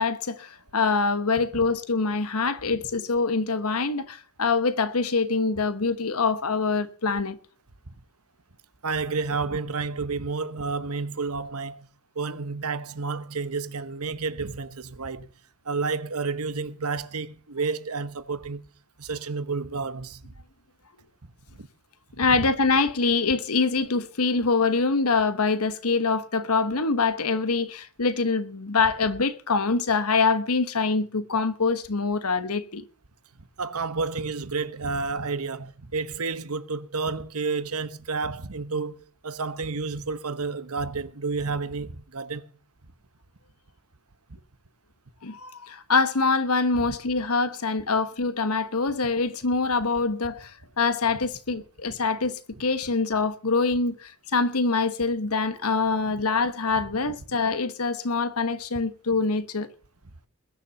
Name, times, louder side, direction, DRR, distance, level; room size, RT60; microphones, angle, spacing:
voice 1, 0.0-7.4 22.2-32.8 45.2-59.7, left 4 dB, 85° left, 1.2 m, -25 dB
voice 2, 8.8-11.9 12.1-15.3 15.6-18.7 19.0-20.2 21.2-21.7 22.3-22.4 33.4-42.5 44.3-44.4 46.8-46.9 56.1-56.2 56.8-56.9, right 4 dB, 85° right, 1.1 m, -30 dB
21.0 x 7.1 x 6.9 m
head